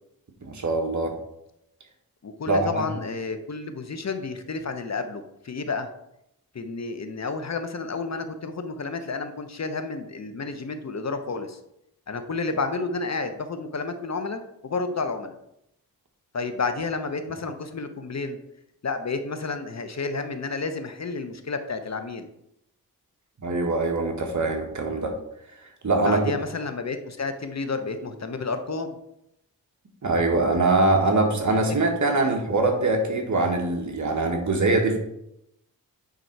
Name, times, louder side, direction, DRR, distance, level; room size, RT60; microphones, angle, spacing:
voice 1, 0.4-1.1 2.5-2.9 23.4-25.2 25.6-26.2 30.0-35.0, right 2 dB, 50° right, 2 dB, 1.6 m, -23 dB
voice 2, 2.2-5.9 6.5-11.6 12.1-15.3 16.3-18.4 18.8-22.3 26.0-29.0, left 4 dB, 45° left, 8 dB, 0.8 m, -31 dB
9.3 x 3.8 x 4.6 m, 0.82 s
wide cardioid pair, 80°, 37 cm